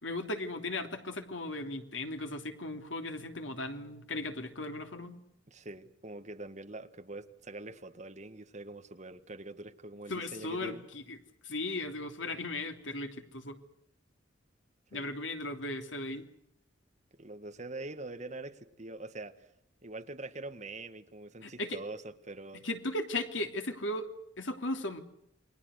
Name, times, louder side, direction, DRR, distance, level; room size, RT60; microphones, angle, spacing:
voice 1, 0.0-5.1 10.1-11.2 11.4-13.6 14.9-16.2 21.4-21.8 22.6-24.1 24.4-25.0, left 2 dB, 85° left, 6 dB, 3.1 m, -37 dB
voice 2, 5.5-10.9 14.9-15.1 17.1-19.5 19.8-22.7, right 2 dB, 40° right, 9 dB, 1.7 m, -44 dB
29.0 x 22.0 x 6.6 m, 0.77 s
head